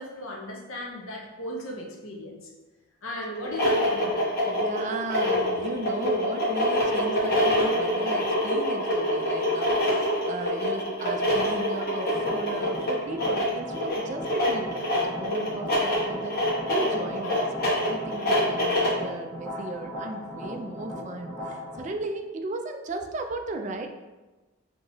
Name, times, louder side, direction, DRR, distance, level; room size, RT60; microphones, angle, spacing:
voice 1, 0.0-2.5 3.0-4.4, left 1 dB, 80° left, -1 dB, 0.8 m, -37 dB
sound 1, 3.4-19.1, left 1 dB, 45° left, 1.2 m, -25 dB
voice 2, 4.3-14.8 15.0-16.4 16.7-23.9, right 2 dB, 35° right, 5 dB, 0.4 m, -35 dB
sound 2, 12.1-21.8, equal, 10° left, 1.1 m, -39 dB
5.6 x 2.9 x 2.7 m, 1.2 s
head